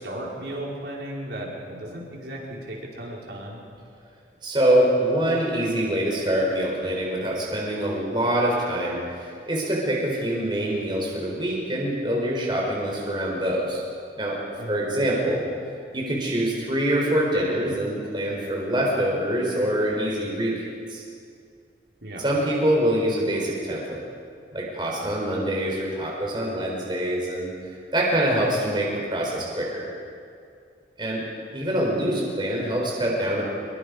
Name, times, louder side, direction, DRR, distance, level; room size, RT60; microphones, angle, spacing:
voice 1, 0.0-3.6 14.6-14.9 22.0-22.2, right 1 dB, 75° right, -3 dB, 5.1 m, -35 dB
voice 2, 4.4-13.8 14.1-14.4 14.7-15.4 15.9-21.0 22.2-24.0 24.5-27.5 27.9-29.9 31.0-31.2 31.5-33.4, right 1 dB, 25° right, -3 dB, 4.3 m, -25 dB
25.5 x 22.5 x 5.3 m, 2.4 s
head